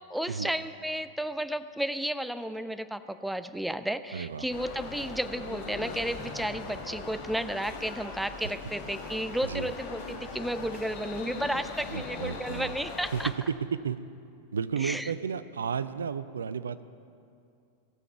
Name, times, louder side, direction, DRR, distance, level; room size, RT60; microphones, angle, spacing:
voice 1, 0.1-13.3 14.8-15.1, right 1 dB, ahead, 11 dB, 0.4 m, -33 dB
voice 2, 4.1-4.5 9.4-9.7 11.9-12.7 13.1-13.3 13.7-14.0 14.5-16.8, right 6 dB, 70° right, 14 dB, 0.4 m, -32 dB
sound 1, 4.5-13.3, left 4 dB, 50° left, 1.3 m, -40 dB
17.5 x 7.1 x 5.8 m, 2.5 s
figure-of-eight pair, 90°, 0 cm